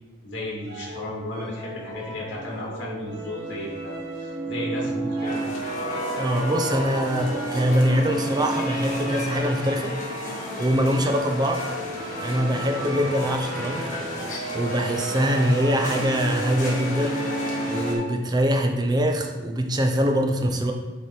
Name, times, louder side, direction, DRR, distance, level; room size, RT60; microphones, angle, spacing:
voice 1, 0.2-5.4, left 1 dB, 70° left, -4 dB, 2.3 m, -34 dB
sound 1, 0.6-18.3, right 2 dB, 60° right, 1.5 m, -33 dB
sound 2, 5.2-18.0, left 1 dB, 40° left, 1.5 m, -33 dB
voice 2, 6.2-11.6 12.2-13.9 14.5-20.7, equal, 20° right, 3 dB, 0.6 m, -24 dB
9.6 x 3.5 x 4.3 m, 1.2 s
head